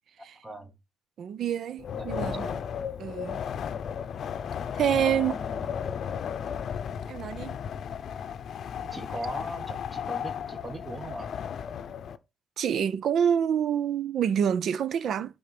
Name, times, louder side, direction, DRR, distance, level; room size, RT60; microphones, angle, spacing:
voice 1, 0.4-0.7 1.9-2.7 4.9-5.6 8.9-11.3, right 1 dB, 20° right, 1.3 m, -39 dB
voice 2, 1.2-2.5 3.0-3.4 4.7-5.3 7.1-7.6 12.6-15.4, right 8 dB, 65° right, 0.6 m, -27 dB
Wind, 1.8-12.2, left 8 dB, 60° left, 0.6 m, -34 dB
8.6 x 4.0 x 5.9 m
cardioid pair, 90°, 0 cm